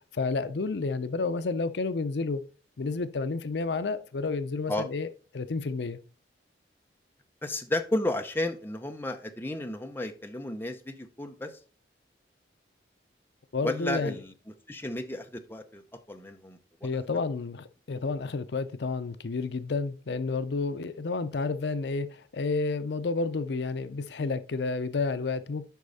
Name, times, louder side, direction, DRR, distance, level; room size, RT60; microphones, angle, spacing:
voice 1, 0.1-2.4 2.8-5.1 5.3-6.0 13.5-14.1 16.8-25.6, left 4 dB, 75° left, 0.5 m, -30 dB
voice 2, 7.4-11.6 13.6-14.3 14.7-15.8 16.1-16.9, left 1 dB, 10° left, 0.7 m, -33 dB
8.3 x 5.5 x 4.0 m
head